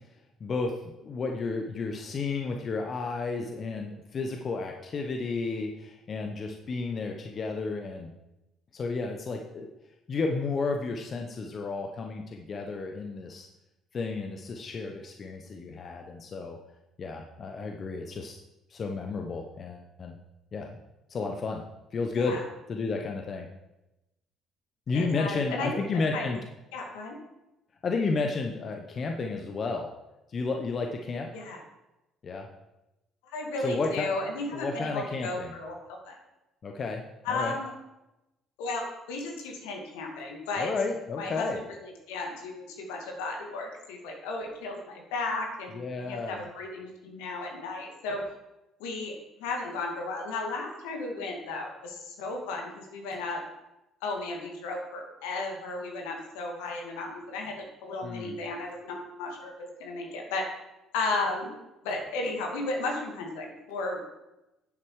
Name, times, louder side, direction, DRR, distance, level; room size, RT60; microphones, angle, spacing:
voice 1, 0.4-8.1 8.7-9.7 10.1-13.5 13.9-16.6 17.0-18.4 18.7-20.1 20.5-20.8 21.1-21.6 21.9-22.4 22.7-23.5 24.9-26.4 27.8-29.9 30.3-31.3 32.2-32.5 33.6-34.1 34.5-35.5 36.6-37.0 37.3-37.5 40.5-41.6 45.7-46.4 58.0-58.3, left 4 dB, 45° left, 3 dB, 1.1 m, -32 dB
voice 2, 22.2-22.5 24.9-26.4 26.7-27.1 31.3-31.6 33.3-35.8 36.0-36.2 37.2-37.7 38.6-40.7 41.2-41.5 41.8-48.2 48.8-49.1 49.4-53.4 54.0-60.4 60.9-61.5 61.8-64.0, left 3 dB, 80° left, 1 dB, 2.3 m, -34 dB
9.7 x 7.8 x 4.9 m, 0.95 s
hypercardioid pair, 60°, 0 cm